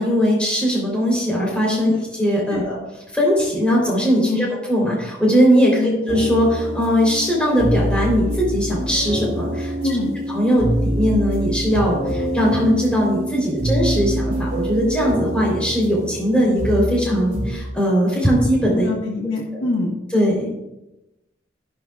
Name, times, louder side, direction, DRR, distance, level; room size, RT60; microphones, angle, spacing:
voice 1, 0.0-2.8 3.1-9.7 10.3-18.9 19.5-19.7 20.1-20.5, equal, 5° left, -3 dB, 3.8 m, -19 dB
sound 1, 6.1-17.5, right 1 dB, 50° right, 3.3 m, -25 dB
voice 2, 9.8-10.1 18.7-19.9, left 2 dB, 85° left, -2 dB, 1.6 m, -24 dB
13.0 x 12.0 x 2.5 m, 0.96 s
head